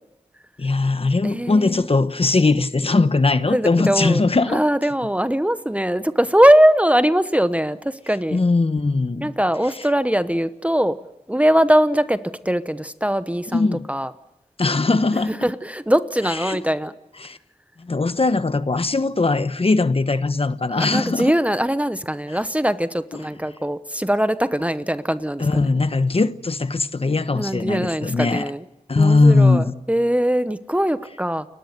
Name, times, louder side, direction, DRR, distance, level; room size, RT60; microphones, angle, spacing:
voice 1, 0.6-4.6 8.3-9.3 13.5-13.9 14.6-15.4 16.4-16.6 17.2-17.4 17.9-21.3 25.4-28.4 28.9-29.7, left 3 dB, 45° left, 1.1 m, -19 dB
voice 2, 1.2-1.9 3.5-4.2 4.5-8.4 9.2-11.0 11.3-14.1 15.3-16.9 20.7-25.7 27.3-28.6 29.0-31.5, equal, 10° right, 0.9 m, -21 dB
29.5 x 22.0 x 6.7 m
wide cardioid pair, 85°, 14 cm